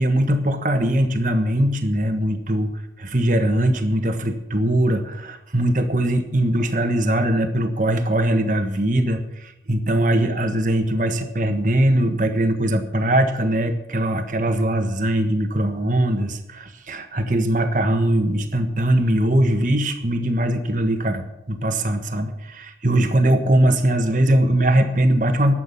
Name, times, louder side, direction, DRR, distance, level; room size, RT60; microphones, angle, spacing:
voice 1, 0.0-25.5, right 1 dB, 45° right, 7 dB, 1.5 m, -21 dB
11.5 x 7.8 x 9.9 m, 0.90 s
head